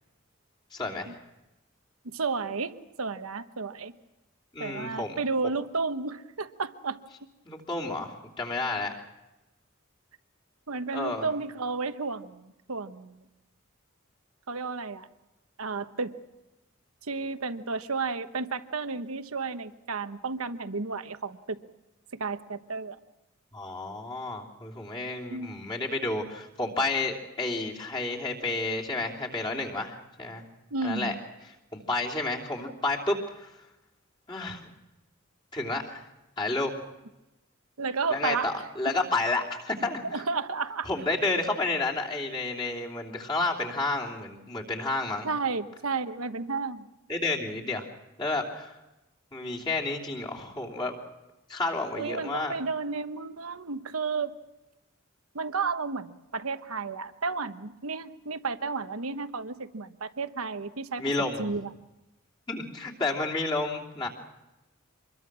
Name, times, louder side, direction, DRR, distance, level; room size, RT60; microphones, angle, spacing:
voice 1, 0.7-1.2 4.5-5.2 7.4-8.9 10.9-11.3 23.5-30.4 30.8-31.1 31.7-33.5 34.3-34.6 35.5-36.0 36.4-36.7 38.1-40.2 40.8-45.3 47.1-47.9 48.2-48.7 49.3-50.9 51.5-52.6 61.0-61.4 62.5-64.1, left 2 dB, 20° left, -2 dB, 3.1 m, -31 dB
voice 2, 2.0-3.9 4.6-7.0 10.7-13.2 14.5-15.1 15.6-16.1 17.0-21.6 22.2-23.0 25.3-25.5 30.7-31.2 37.8-38.9 40.1-40.9 45.2-46.9 52.0-54.3 55.3-61.0 61.4-61.7, right 4 dB, 90° right, 10 dB, 1.2 m, -32 dB
25.5 x 21.5 x 6.2 m, 1.0 s
head